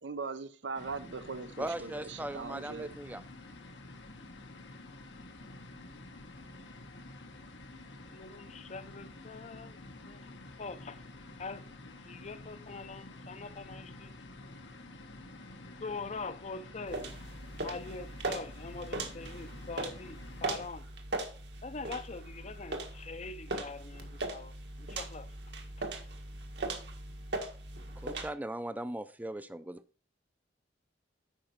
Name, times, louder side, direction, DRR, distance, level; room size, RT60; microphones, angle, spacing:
voice 1, 0.0-2.9, right 4 dB, 85° right, 0.7 m, -40 dB
sound 1, 0.7-20.7, left 2 dB, 85° left, 1.2 m, -49 dB
voice 2, 1.6-3.2 28.0-29.8, right 1 dB, 10° right, 0.5 m, -38 dB
voice 3, 8.1-11.0 11.4-11.7 12.1-14.1 15.8-20.8 21.6-25.3, left 4 dB, 40° left, 0.6 m, -43 dB
sound 2, 16.9-28.3, right 2 dB, 70° right, 1.5 m, -39 dB
8.8 x 5.3 x 4.5 m
head